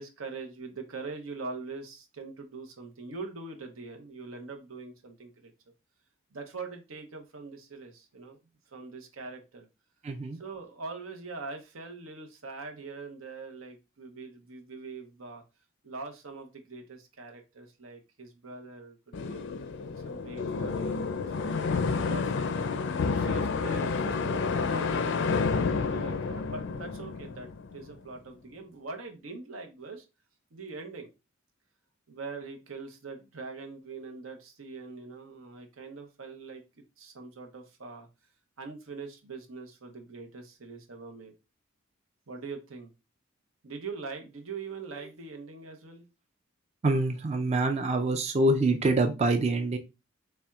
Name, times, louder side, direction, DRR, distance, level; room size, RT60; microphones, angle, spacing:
voice 1, 0.0-5.5 6.3-8.4 8.7-9.7 10.3-15.4 15.8-19.5 20.0-22.5 23.0-30.0 30.5-31.1 32.1-36.6 37.0-38.1 38.6-41.3 42.3-42.9 43.6-46.1, right 4 dB, 90° right, 3 dB, 0.9 m, -42 dB
voice 2, 10.0-10.4 46.8-49.8, right 2 dB, 30° right, 5 dB, 0.4 m, -25 dB
sound 1, 19.1-27.9, left 4 dB, 60° left, 0.4 m, -30 dB
4.3 x 3.4 x 2.2 m, 0.27 s
head